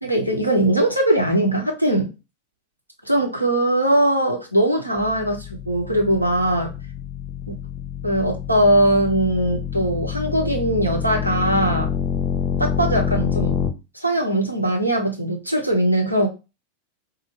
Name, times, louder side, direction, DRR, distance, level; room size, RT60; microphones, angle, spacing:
voice 1, 0.0-2.1 3.0-6.7 8.0-11.9 12.6-13.6 13.9-16.3, right 1 dB, 85° right, 1 dB, 1.0 m, -20 dB
sound 1, 5.0-13.7, left 7 dB, 25° left, 0.7 m, -27 dB
4.2 x 2.2 x 3.2 m, 0.27 s
figure-of-eight pair, 90°, 0 cm